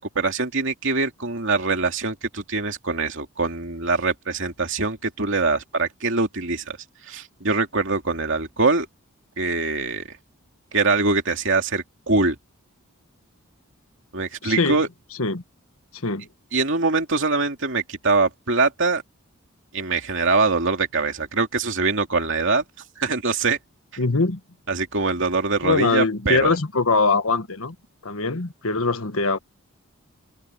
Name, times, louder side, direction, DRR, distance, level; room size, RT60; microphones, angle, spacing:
voice 1, 0.0-6.8 7.1-8.9 9.4-10.0 10.7-12.3 14.1-14.9 16.5-19.0 19.7-22.6 23.0-23.6 24.7-26.5, right 3 dB, 60° right, 2.8 m, -23 dB
voice 2, 14.4-14.8 15.2-15.4 15.9-16.3 24.0-24.4 25.6-27.7 28.0-29.4, left 3 dB, 75° left, 1.5 m, -22 dB
head